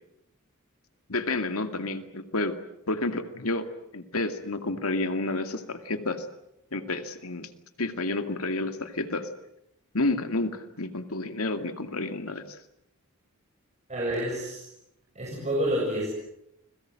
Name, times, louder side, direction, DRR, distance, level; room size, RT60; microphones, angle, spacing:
voice 1, 1.1-2.6 2.9-3.7 3.9-6.3 6.7-7.5 7.8-9.3 9.9-12.6, left 2 dB, 80° left, 8 dB, 2.3 m, -30 dB
voice 2, 13.9-14.7 15.1-16.1, right 1 dB, 35° right, -3 dB, 7.4 m, -28 dB
30.0 x 22.0 x 7.7 m, 0.83 s
head